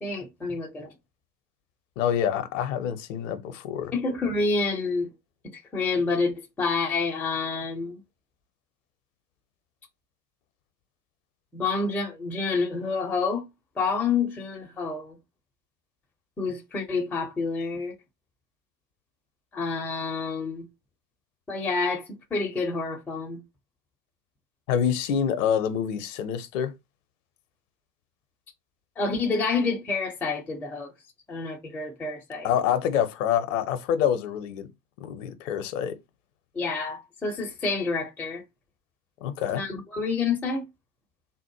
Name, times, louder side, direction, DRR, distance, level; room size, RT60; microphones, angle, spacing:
voice 1, 0.0-0.9 3.9-5.1 5.5-8.0 11.5-13.4 13.8-15.2 16.4-17.9 19.5-20.7 21.5-23.4 29.0-30.9 31.3-32.5 36.5-38.4 39.5-40.6, left 4 dB, 5° left, 0.4 m, -28 dB
voice 2, 2.0-3.9 24.7-26.7 32.4-34.7 35.0-36.0 39.2-39.6, left 9 dB, 50° left, 0.6 m, -26 dB
3.7 x 2.0 x 2.9 m
figure-of-eight pair, 75°, 50 cm